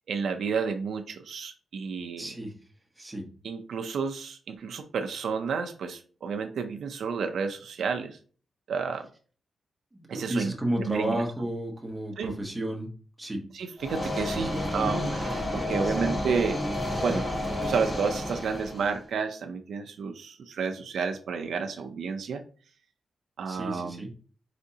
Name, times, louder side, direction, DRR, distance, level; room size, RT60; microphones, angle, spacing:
voice 1, 0.1-2.2 3.4-8.2 8.7-9.1 10.1-10.5 10.8-11.2 12.2-12.3 13.5-16.6 17.0-17.3 17.6-22.4 23.4-24.1, right 5 dB, 75° right, 6 dB, 0.5 m, -31 dB
voice 2, 2.2-2.5 3.0-3.2 9.9-12.9 13.2-13.4 14.4-14.6 23.5-24.1, right 1 dB, 10° right, 0 dB, 1.0 m, -32 dB
sound 1, 13.8-19.0, left 1 dB, 25° left, 1.7 m, -30 dB
5.0 x 3.5 x 2.8 m, 0.41 s
wide cardioid pair, 170°, 0 cm